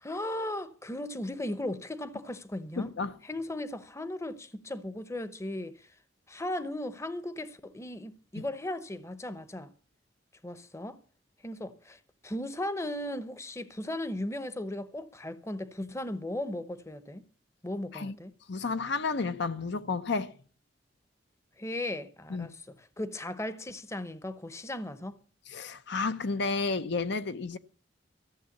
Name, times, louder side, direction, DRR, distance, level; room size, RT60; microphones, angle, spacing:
voice 1, 0.0-2.9 3.2-5.9 6.3-9.7 10.4-11.0 11.4-17.2 17.6-18.3 21.6-25.2, left 1 dB, 15° left, 0.8 m, -37 dB
voice 2, 2.8-3.2 8.3-8.5 17.9-18.1 18.5-20.3 22.3-22.5 25.5-27.6, left 4 dB, 65° left, 0.7 m, -31 dB
14.5 x 7.4 x 7.2 m
head